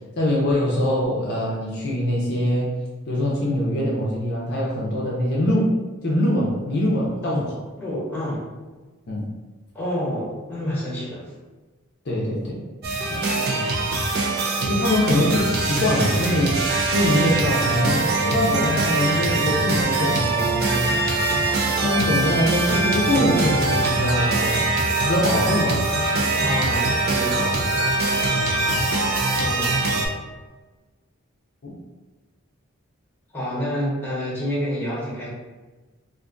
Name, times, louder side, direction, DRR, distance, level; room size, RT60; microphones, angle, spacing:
voice 1, 0.2-2.7 3.1-5.7 6.0-7.5 9.1-9.2 12.1-12.6 13.1-13.2 14.6-20.8 21.8-24.6 25.1-25.8 28.7-28.9 31.6-31.7, left 1 dB, 50° left, -4 dB, 0.5 m, -23 dB
voice 2, 7.8-8.4 9.7-11.3 26.4-27.9 29.4-29.8 33.3-35.3, equal, 10° left, -8 dB, 1.1 m, -28 dB
sound 1, 12.8-30.1, right 2 dB, 50° right, 0.5 m, -22 dB
2.5 x 2.3 x 3.7 m, 1.3 s
head